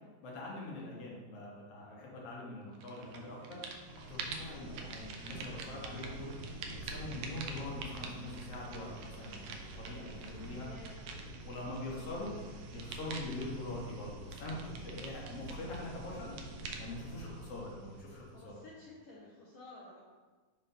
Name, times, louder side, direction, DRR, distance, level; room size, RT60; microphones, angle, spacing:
voice 1, 0.2-3.6 4.1-6.3 6.7-10.7 11.1-12.3 12.7-18.6, left 2 dB, 65° left, -3 dB, 1.9 m, -44 dB
sound 1, 2.8-3.2 3.4-18.5, right 3 dB, 80° right, 1.3 m, -45 dB
sound 2, 2.9-10.6, right 1 dB, 55° right, 1.9 m, -58 dB
voice 2, 10.6-11.1 11.5-12.2 18.3-20.0, left 2 dB, 80° left, -4 dB, 1.1 m, -54 dB
5.4 x 3.2 x 5.5 m, 1.4 s
omnidirectional pair, 3.3 m